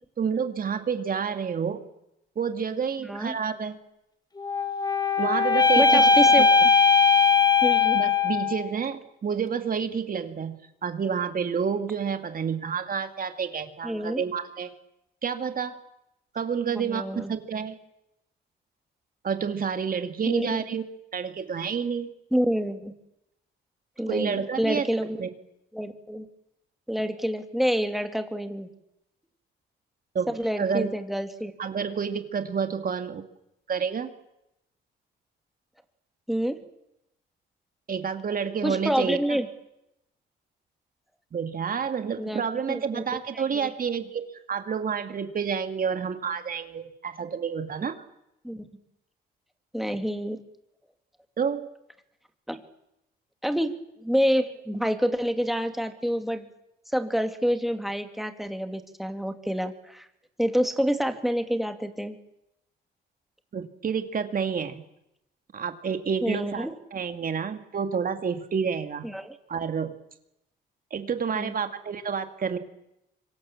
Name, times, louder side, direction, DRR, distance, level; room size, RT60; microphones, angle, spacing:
voice 1, 0.2-1.8 2.4-3.8 5.2-6.0 6.4-6.5 7.9-14.7 15.2-15.7 16.3-17.8 19.2-20.8 21.1-22.1 24.1-24.9 25.2-25.3 30.1-30.9 31.6-33.2 33.7-34.1 37.9-39.4 41.3-48.0 51.4-51.7 63.5-64.8 65.5-69.0 69.5-69.9 70.9-72.6, right 6 dB, 45° right, 7 dB, 2.4 m, -29 dB
voice 2, 3.0-3.3 5.8-6.5 7.6-8.0 13.8-14.2 16.7-17.3 20.3-20.6 22.3-22.9 24.0-25.2 25.7-26.3 26.9-28.7 30.3-31.5 36.3-36.6 38.6-39.5 42.2-43.0 43.3-43.7 48.4-48.7 49.7-50.4 52.5-52.6 53.4-56.5 56.9-60.0 60.4-62.2 66.2-66.7 69.0-69.3 71.3-71.5, equal, ahead, 6 dB, 2.7 m, -28 dB
sound 1, 4.4-8.7, left 5 dB, 20° left, 1.9 m, -19 dB
25.5 x 24.0 x 7.4 m, 0.86 s
cardioid pair, 90°, 20 cm